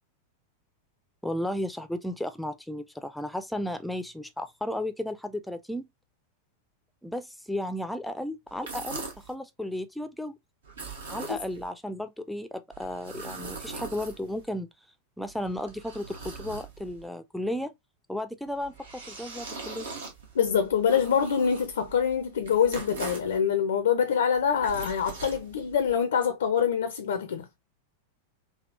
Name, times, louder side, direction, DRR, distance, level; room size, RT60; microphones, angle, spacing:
voice 1, 1.2-5.9 7.0-10.4 11.1-14.7 15.2-17.7 18.1-19.9, left 1 dB, ahead, 0.4 m, -34 dB
sound 1, 8.5-9.3 10.6-11.7 12.7-14.5 15.2-17.1 18.5-23.4 24.3-26.0, right 4 dB, 65° right, 0.9 m, -41 dB
voice 2, 20.3-27.5, left 7 dB, 65° left, 0.4 m, -25 dB
3.5 x 2.3 x 2.4 m
figure-of-eight pair, 90°, 0 cm